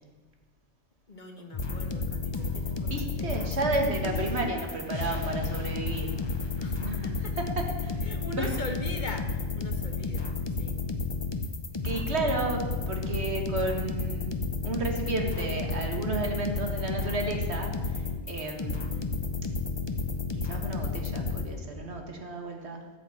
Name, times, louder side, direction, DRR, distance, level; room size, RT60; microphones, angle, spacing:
voice 1, 1.1-3.5 6.6-7.4 8.0-10.8 18.7-19.2, left 2 dB, 45° left, 4 dB, 1.5 m, -42 dB
sound 1, 1.5-21.5, left 4 dB, 25° left, 0.8 m, -32 dB
voice 2, 2.9-6.1 6.8-7.0 7.4-8.0 8.4-8.5 11.8-19.0 20.4-22.8, right 3 dB, 70° right, 3 dB, 1.9 m, -32 dB
15.0 x 5.8 x 8.5 m, 1.4 s
omnidirectional pair, 1.1 m